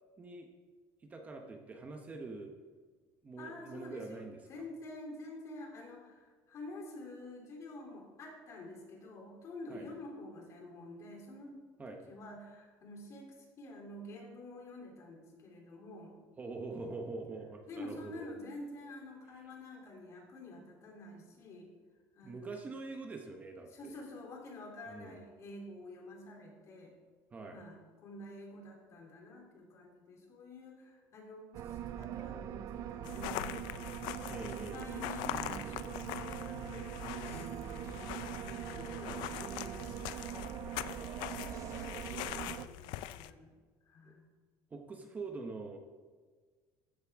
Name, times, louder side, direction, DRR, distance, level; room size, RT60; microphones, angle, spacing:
voice 1, 0.2-0.5 1.1-2.5 3.2-4.6 9.7-9.9 11.8-12.0 16.4-18.3 22.2-24.0 24.9-25.2 27.3-27.6 34.3-35.1 39.0-39.2 40.9-42.6 44.0-44.2 44.7-45.8, right 3 dB, 20° right, 3 dB, 0.9 m, -45 dB
voice 2, 3.4-11.6 11.9-16.2 17.7-21.7 22.1-22.5 23.7-26.9 27.5-33.9 34.4-40.2 40.7-41.0 42.0-43.5 43.8-44.2, left 2 dB, 40° left, 0 dB, 3.0 m, -49 dB
sound 1, 31.5-42.7, right 11 dB, 45° right, 0.4 m, -42 dB
sound 2, 33.0-43.3, left 14 dB, 80° left, 0.5 m, -43 dB
14.0 x 12.0 x 3.6 m, 1.5 s
cardioid pair, 160°, 8 cm